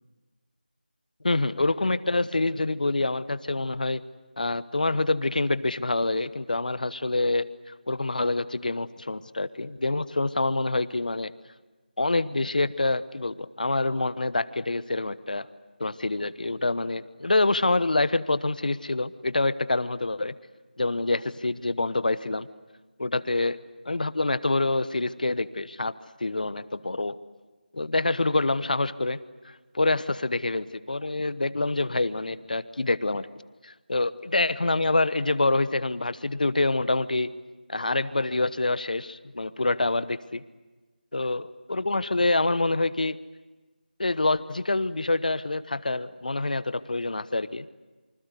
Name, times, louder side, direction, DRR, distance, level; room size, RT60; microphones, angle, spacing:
voice 1, 1.2-4.0 4.4-7.5 7.9-11.3 12.0-15.5 15.8-20.3 20.8-22.5 23.0-23.6 23.9-25.9 26.2-27.2 27.7-29.2 29.4-33.3 33.6-37.3 37.7-40.4 41.1-43.2 44.0-47.7, left 2 dB, 55° left, 15 dB, 1.1 m, -26 dB
27.5 x 25.0 x 8.2 m, 1.2 s
figure-of-eight pair, 170°, 5 cm